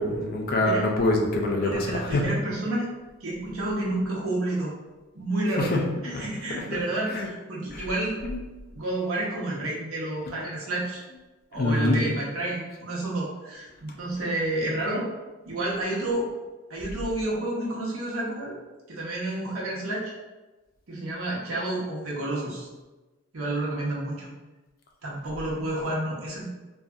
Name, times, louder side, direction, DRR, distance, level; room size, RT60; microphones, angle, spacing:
voice 1, 0.0-2.3 5.6-6.2 6.5-6.6 7.1-7.3 7.7-7.8 8.2-8.4 11.5-12.2, left 1 dB, 45° left, 1 dB, 0.4 m, -25 dB
voice 2, 1.6-2.9 3.2-4.7 5.1-5.7 6.0-8.2 8.7-11.0 11.5-15.1 15.4-16.3 16.7-18.6 18.9-20.1 20.9-22.7 23.3-24.3 25.0-26.4, right 1 dB, 90° right, -4 dB, 0.8 m, -30 dB
2.7 x 2.3 x 2.3 m, 1.2 s
head